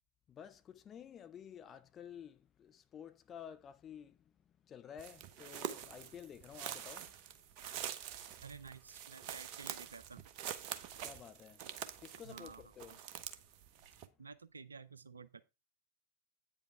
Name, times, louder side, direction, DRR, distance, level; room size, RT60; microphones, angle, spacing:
voice 1, 0.3-7.4 11.0-11.7 12.0-13.0, left 8 dB, 25° left, 0.6 m, -52 dB
sound 1, 5.0-14.1, right 9 dB, 45° right, 0.8 m, -46 dB
voice 2, 8.4-10.2 12.2-13.0 14.2-15.4, right 5 dB, 75° right, 0.5 m, -52 dB
8.7 x 5.2 x 4.5 m
figure-of-eight pair, 90°, 0 cm